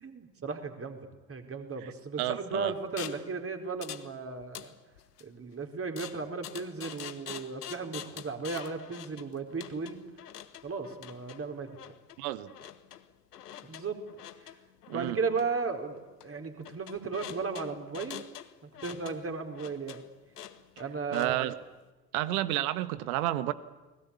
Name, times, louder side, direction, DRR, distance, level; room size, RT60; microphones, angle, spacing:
voice 1, 0.0-4.7 5.2-10.0 10.6-11.7 13.6-14.0 14.4-14.5 14.9-18.3 18.8-20.0 20.8-21.5, right 4 dB, 30° right, 4 dB, 4.4 m, -35 dB
voice 2, 2.2-2.7 12.2-12.5 14.9-15.2 21.1-21.5 22.1-23.5, right 15 dB, 65° right, 14 dB, 1.6 m, -30 dB
sound 1, 3.0-3.3 3.8-4.1 4.4-5.2 6.0-21.6, left 10 dB, 80° left, 1.3 m, -46 dB
30.0 x 20.5 x 8.6 m, 1.1 s
figure-of-eight pair, 60°, 46 cm